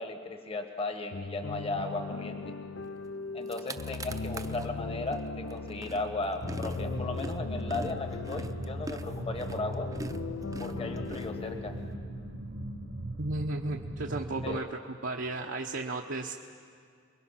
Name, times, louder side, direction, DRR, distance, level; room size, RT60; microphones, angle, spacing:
voice 1, 0.0-2.6 3.3-9.9 10.6-11.7 14.4-14.6, left 2 dB, 30° left, 6 dB, 1.4 m, -36 dB
sound 1, 1.1-12.8, left 4 dB, 75° left, 0.6 m, -39 dB
sound 2, 3.1-3.2 3.4-4.7 5.1-11.9, right 2 dB, 20° right, 0.7 m, -44 dB
sound 3, 6.4-14.6, right 1 dB, 55° right, 1.1 m, -40 dB
voice 2, 13.2-16.3, right 2 dB, 80° right, -1 dB, 1.0 m, -34 dB
28.0 x 21.5 x 5.9 m, 2.1 s
head